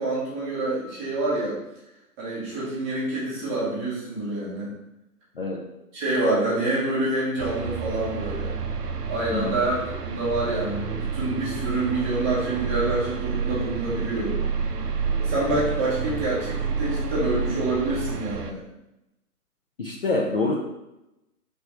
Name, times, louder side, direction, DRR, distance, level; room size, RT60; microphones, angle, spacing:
voice 1, 0.0-1.6 2.2-4.7 5.9-8.5 9.1-14.4 15.2-18.6, right 2 dB, 10° right, -7 dB, 0.7 m, -27 dB
sound 1, 7.4-18.5, right 5 dB, 80° right, 0.6 m, -29 dB
voice 2, 19.8-20.5, left 3 dB, 40° left, -2 dB, 0.4 m, -26 dB
4.4 x 3.4 x 2.9 m, 0.92 s
figure-of-eight pair, 125°, 46 cm